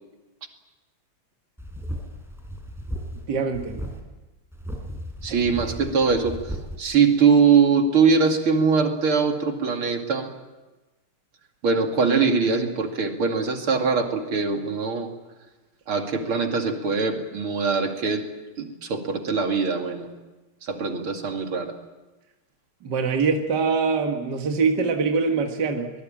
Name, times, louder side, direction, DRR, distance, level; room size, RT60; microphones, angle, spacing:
sound 1, 1.6-3.3 3.5-4.0 4.5-6.8, equal, ahead, 4.8 m, -35 dB
voice 1, 3.3-3.8 22.8-25.9, right 4 dB, 50° right, 3 dB, 2.3 m, -23 dB
voice 2, 5.2-10.3 11.6-15.1 15.9-18.2 18.6-20.1 20.6-21.7, right 5 dB, 75° right, 3 dB, 3.3 m, -22 dB
25.0 x 19.5 x 8.9 m, 1.2 s
omnidirectional pair, 2.4 m